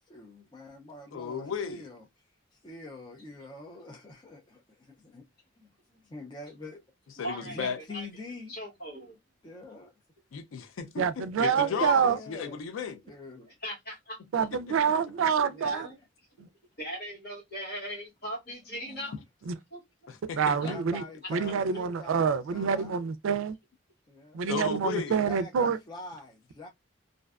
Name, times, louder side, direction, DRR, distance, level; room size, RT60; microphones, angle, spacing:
voice 1, 0.1-2.1 2.5-5.2 5.6-6.8 7.4-8.5 9.4-9.9 11.3-12.6 13.0-13.6 15.0-15.7 18.9-19.1 20.6-22.9 24.1-24.5 25.1-26.7, left 2 dB, 25° left, 0.4 m, -45 dB
voice 2, 1.1-1.8 7.2-7.8 10.3-11.0 11.4-13.0 14.5-14.6 20.1-20.6 20.9-21.0 24.5-25.2, left 6 dB, 85° left, 0.4 m, -34 dB
voice 3, 7.2-8.1 8.5-9.1 13.6-14.2 15.6-15.9 16.8-19.1 19.7-20.1 20.6-20.7, equal, 50° left, 1.4 m, -39 dB
voice 4, 11.0-12.2 14.3-15.9 16.4-16.5 19.5-19.6 20.3-21.0 21.3-23.6 24.3-25.8, right 6 dB, 80° right, 0.3 m, -27 dB
2.5 x 2.1 x 2.3 m
head